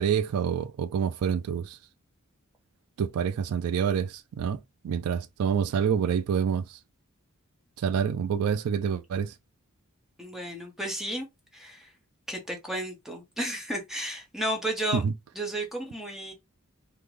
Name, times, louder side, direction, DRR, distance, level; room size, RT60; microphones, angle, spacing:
voice 1, 0.0-1.8 3.0-4.6 4.8-6.8 7.8-9.3 14.9-15.1, right 7 dB, 80° right, 0.3 m, -27 dB
voice 2, 10.2-11.3 11.5-11.9 12.3-15.0 15.3-16.3, right 1 dB, ahead, 1.0 m, -33 dB
3.6 x 2.2 x 3.1 m
head